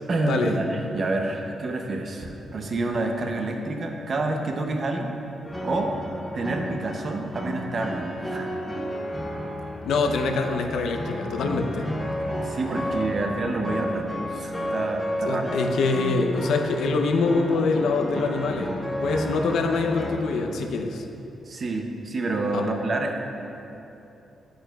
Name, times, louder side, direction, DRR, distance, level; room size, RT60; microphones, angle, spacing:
voice 1, 0.1-5.2 5.6-6.0 6.3-8.5 12.4-15.7 21.5-23.2, right 2 dB, 35° right, 3 dB, 0.6 m, -28 dB
sound 1, 5.4-20.2, equal, 10° left, 0.8 m, -32 dB
voice 2, 9.8-11.9 15.2-18.7 19.0-21.0 22.5-22.6, left 3 dB, 85° left, 4 dB, 0.6 m, -24 dB
8.9 x 8.9 x 2.3 m, 2.9 s
wide cardioid pair, 170°, 0 cm